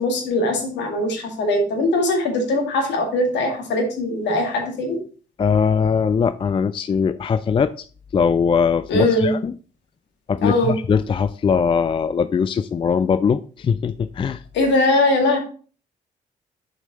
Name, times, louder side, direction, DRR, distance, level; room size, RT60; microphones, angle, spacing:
voice 1, 0.0-5.0 8.9-9.4 10.4-10.7 14.5-15.4, left 1 dB, 60° left, 3 dB, 2.2 m, -20 dB
voice 2, 5.4-7.8 8.1-9.5 10.3-14.4, left 6 dB, 25° left, 13 dB, 0.4 m, -20 dB
7.5 x 5.2 x 4.2 m, 0.39 s
figure-of-eight pair, 45°, 20 cm